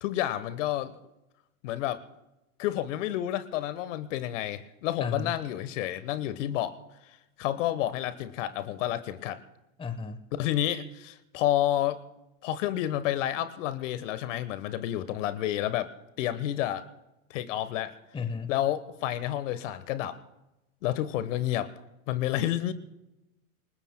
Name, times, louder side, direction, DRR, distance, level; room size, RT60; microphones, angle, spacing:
voice 1, 0.0-0.9 1.6-2.0 2.6-6.8 7.4-9.4 10.3-12.0 12.4-15.9 16.2-16.8 17.3-17.9 18.5-20.2 20.8-21.7 22.1-22.7, left 13 dB, 60° left, 13 dB, 1.3 m, -30 dB
voice 2, 5.0-5.4 9.8-10.2 18.1-18.5, left 5 dB, 10° left, 9 dB, 1.0 m, -33 dB
28.0 x 19.5 x 2.2 m, 0.96 s
hypercardioid pair, 105°, 43 cm